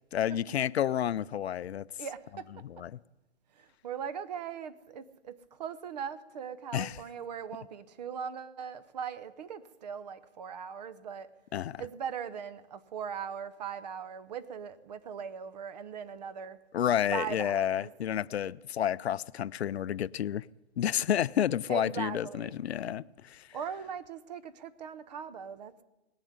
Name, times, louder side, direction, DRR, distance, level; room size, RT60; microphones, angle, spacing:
voice 1, 0.1-1.9 2.8-3.0 6.7-7.0 11.5-11.8 16.7-20.5 20.8-23.5, left 10 dB, 65° left, 0.5 m, -30 dB
voice 2, 2.0-2.9 3.5-11.3 11.8-16.6 17.1-17.9 21.7-22.6 23.5-25.8, right 7 dB, 40° right, 0.8 m, -40 dB
18.5 x 7.3 x 9.5 m
hypercardioid pair, 150°, 34 cm